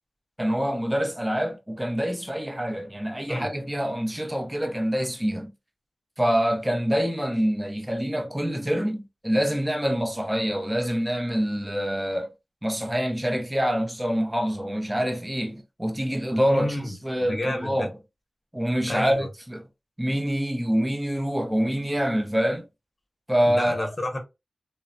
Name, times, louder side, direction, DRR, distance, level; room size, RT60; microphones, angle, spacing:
voice 1, 0.4-5.5 6.2-12.3 12.6-17.9 18.5-19.6 20.0-22.7 23.3-23.8, equal, 10° right, 0.6 m, -26 dB
voice 2, 16.3-17.9 18.9-19.3 23.5-24.2, left 1 dB, 35° left, 1.0 m, -30 dB
2.9 x 2.0 x 2.6 m
cardioid pair, 55°, 0 cm